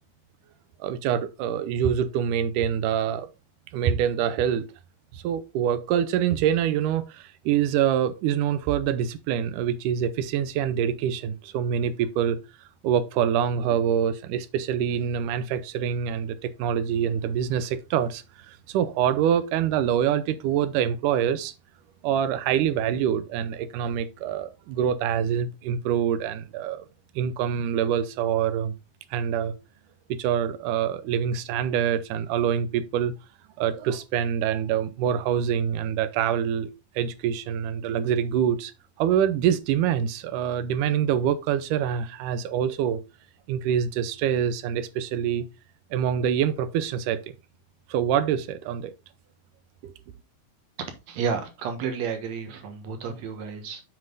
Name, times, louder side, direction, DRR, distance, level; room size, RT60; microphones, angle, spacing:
voice 1, 0.8-3.3 3.7-4.7 5.1-12.4 12.8-21.5 22.0-26.9 27.2-28.8 29.1-29.5 30.1-33.1 33.6-36.7 37.0-38.7 39.0-43.0 43.5-45.5 45.9-47.3 47.9-48.9 49.8-49.9, right 9 dB, 90° right, 2.2 m, -25 dB
voice 2, 50.8-53.8, right 6 dB, 65° right, 2.4 m, -31 dB
7.5 x 5.0 x 3.8 m
omnidirectional pair, 3.6 m